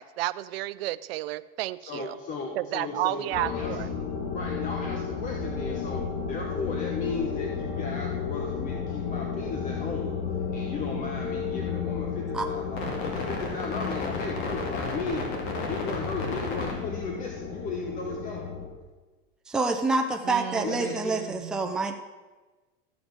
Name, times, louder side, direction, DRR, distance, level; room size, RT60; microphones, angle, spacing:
voice 1, 0.0-2.2 2.5-3.9 20.2-21.7, right 16 dB, 85° right, 16 dB, 0.5 m, -32 dB
voice 2, 1.8-3.8 4.3-10.2 10.5-15.4 15.7-18.7 20.6-21.2, left 4 dB, 25° left, 1 dB, 1.0 m, -36 dB
sound 1, 3.3-18.7, left 5 dB, 55° left, 2.4 m, -32 dB
voice 3, 19.5-22.0, right 3 dB, ahead, 3 dB, 0.5 m, -27 dB
13.5 x 5.2 x 6.2 m, 1.2 s
supercardioid pair, 150°, 29 cm